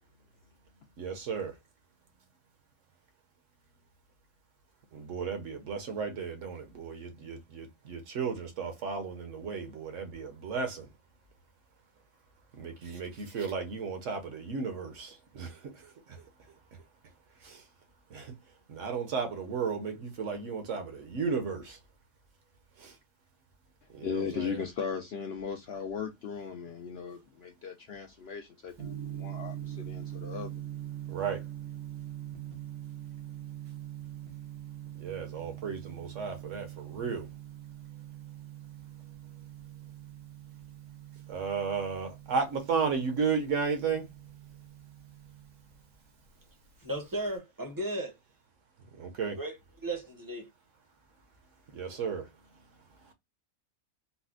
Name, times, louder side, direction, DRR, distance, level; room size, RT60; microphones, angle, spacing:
voice 1, 1.0-1.5 4.9-10.9 12.5-16.2 17.4-17.6 18.1-18.3 18.7-21.8 22.8-22.9 23.9-24.6 31.1-31.4 35.0-37.3 41.3-44.1 49.0-49.4 51.7-52.3, right 5 dB, 65° right, 1.1 m, -34 dB
voice 2, 24.0-30.6, left 6 dB, 60° left, 0.7 m, -37 dB
Gong, 28.7-47.4, right 12 dB, 85° right, 1.5 m, -43 dB
voice 3, 46.8-48.2 49.4-49.6 49.8-50.5, right 1 dB, 20° right, 0.6 m, -35 dB
4.0 x 2.0 x 2.4 m
omnidirectional pair, 1.5 m